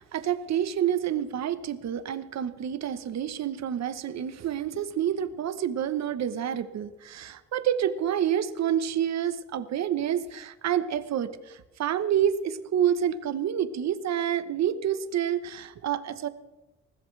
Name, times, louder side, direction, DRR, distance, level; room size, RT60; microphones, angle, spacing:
voice 1, 0.0-16.3, right 9 dB, 60° right, 12 dB, 1.1 m, -28 dB
21.0 x 15.0 x 3.3 m, 1.1 s
cardioid pair, 90°, 30 cm